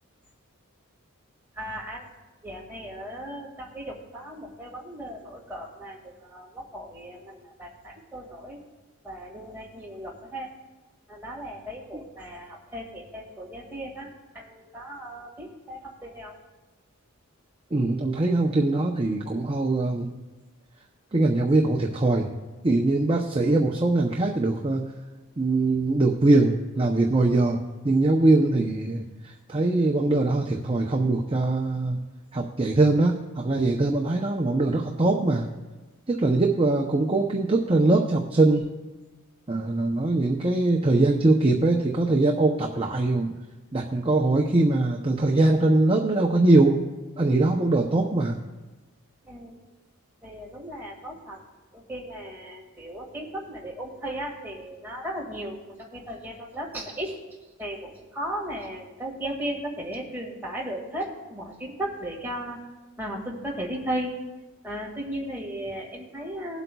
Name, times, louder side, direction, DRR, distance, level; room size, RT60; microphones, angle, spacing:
voice 1, 1.5-2.1 2.4-8.6 9.0-10.5 11.1-16.3 49.2-49.6 50.2-51.4 51.7-57.2 57.6-62.6 63.0-64.1 64.6-66.6, right 1 dB, 10° right, -3 dB, 1.9 m, -36 dB
voice 2, 17.7-20.1 21.1-22.3 22.6-24.9 25.4-32.0 32.3-35.5 36.1-38.6 39.5-43.3 43.7-46.8 47.2-48.4, right 2 dB, 25° right, 1 dB, 0.6 m, -22 dB
20.0 x 8.1 x 2.3 m, 1.2 s
head